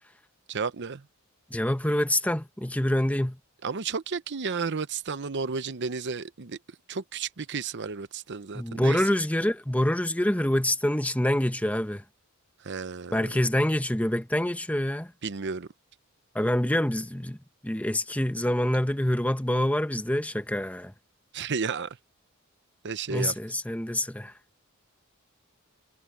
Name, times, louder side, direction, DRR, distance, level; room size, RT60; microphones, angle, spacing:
voice 1, 0.5-1.0 3.6-6.6 6.9-9.0 12.6-13.3 15.2-15.7 21.3-22.0 22.8-23.3, right 5 dB, 55° right, 0.8 m, -32 dB
voice 2, 1.5-3.4 8.5-12.0 13.1-15.1 16.3-17.4 17.6-20.9 23.1-24.3, left 1 dB, 5° left, 1.2 m, -26 dB
head